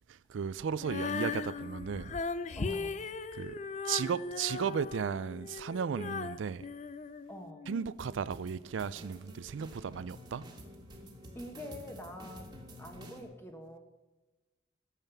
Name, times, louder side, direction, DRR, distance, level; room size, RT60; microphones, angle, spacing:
voice 1, 0.1-2.1 3.3-6.7 7.7-10.5, right 6 dB, 85° right, 0.4 m, -35 dB
Female singing, 0.8-7.8, left 4 dB, 35° left, 0.4 m, -38 dB
voice 2, 2.5-3.0 7.3-7.7 11.3-12.5 12.8-13.8, left 1 dB, 10° left, 1.2 m, -45 dB
sound 1, 8.0-13.2, equal, 20° right, 1.6 m, -50 dB
12.5 x 7.5 x 6.9 m
head